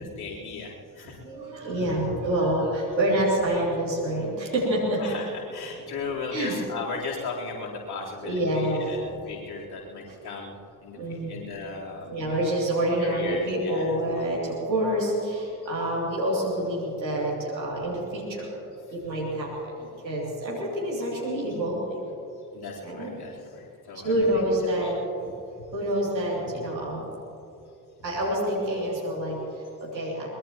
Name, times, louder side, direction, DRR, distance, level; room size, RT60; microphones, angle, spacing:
voice 1, 0.2-1.2 5.0-12.2 13.0-14.0 22.5-24.1 24.8-25.0, left 4 dB, 50° left, -4 dB, 4.0 m, -36 dB
voice 2, 1.0-5.0 6.3-6.6 8.2-9.1 10.9-11.5 12.1-18.5 18.9-22.0 22.8-23.1 23.9-25.0 25.7-27.0 28.0-30.3, right 1 dB, 90° right, -5 dB, 3.1 m, -27 dB
22.5 x 21.0 x 3.0 m, 2.8 s
figure-of-eight pair, 40°, 50 cm